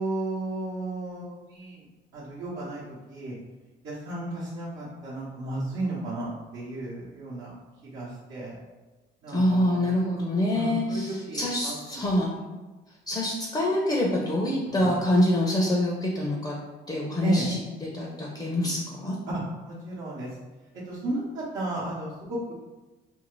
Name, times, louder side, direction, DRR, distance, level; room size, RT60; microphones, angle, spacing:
voice 1, 0.0-1.8 2.1-3.3 3.8-7.5 7.8-8.6 9.2-10.2 10.5-12.1 14.7-14.9 17.2-17.5 19.3-20.3 20.8-22.5, right 2 dB, 75° right, -9 dB, 0.9 m, -33 dB
voice 2, 9.3-12.3 13.1-16.6 16.9-19.2, left 1 dB, 20° left, -3 dB, 0.5 m, -26 dB
2.6 x 2.4 x 3.0 m, 1.2 s
cardioid pair, 90°, 20 cm